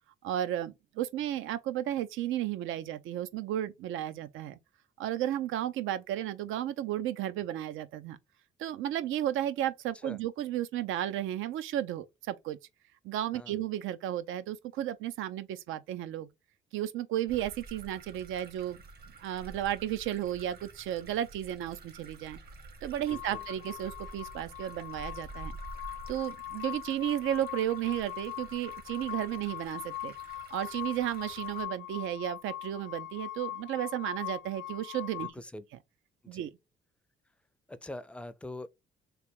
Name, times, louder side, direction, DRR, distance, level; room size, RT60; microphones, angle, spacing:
voice 1, 0.2-4.6 5.0-8.2 8.6-12.6 13.0-16.3 16.7-18.8 19.2-22.4 22.8-25.6 26.1-30.2 30.5-35.3 36.3-36.5, right 12 dB, 85° right, 0.5 m, -33 dB
sound 1, 17.3-31.7, right 3 dB, 50° right, 1.1 m, -49 dB
sound 2, 23.1-35.3, left 13 dB, 65° left, 0.4 m, -41 dB
voice 2, 23.1-23.5 35.2-35.6 36.2-36.5 37.7-38.7, left 1 dB, 5° left, 0.4 m, -43 dB
3.3 x 2.5 x 4.4 m
cardioid pair, 90°, 20 cm